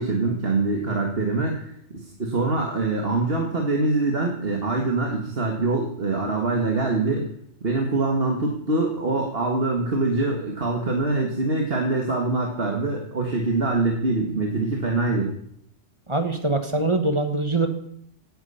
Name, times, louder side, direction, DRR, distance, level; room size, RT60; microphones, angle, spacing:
voice 1, 0.0-7.3 7.6-15.3, right 2 dB, 55° right, 1 dB, 1.8 m, -24 dB
voice 2, 16.1-17.7, right 2 dB, 25° right, 6 dB, 1.4 m, -23 dB
17.0 x 9.1 x 5.6 m, 0.70 s
omnidirectional pair, 1.3 m